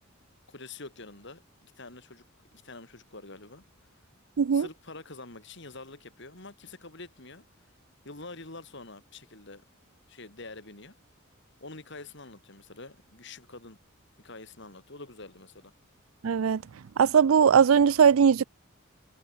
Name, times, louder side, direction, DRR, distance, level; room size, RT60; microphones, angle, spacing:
voice 1, 0.5-2.2 2.5-3.6 4.5-7.4 8.0-9.6 10.1-10.9 11.6-13.8 14.2-15.7, left 3 dB, 60° left, 3.9 m, -46 dB
voice 2, 4.4-4.7 16.2-16.6 17.0-18.4, right 7 dB, 85° right, 0.4 m, -20 dB
head